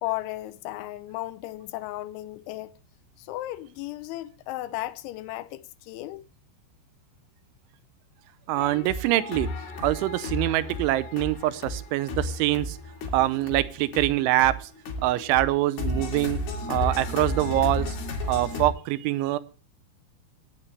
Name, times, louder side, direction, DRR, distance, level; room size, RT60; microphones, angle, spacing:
voice 1, 0.0-2.7 3.2-6.2, left 16 dB, 85° left, 3.2 m, -35 dB
voice 2, 8.5-9.5 9.8-12.8 13.1-14.7 15.0-16.4 16.7-18.0 18.3-19.4, right 16 dB, 90° right, 3.2 m, -24 dB
sound 1, 8.6-18.7, left 2 dB, 60° left, 4.1 m, -33 dB
18.5 x 8.2 x 3.3 m
omnidirectional pair, 5.3 m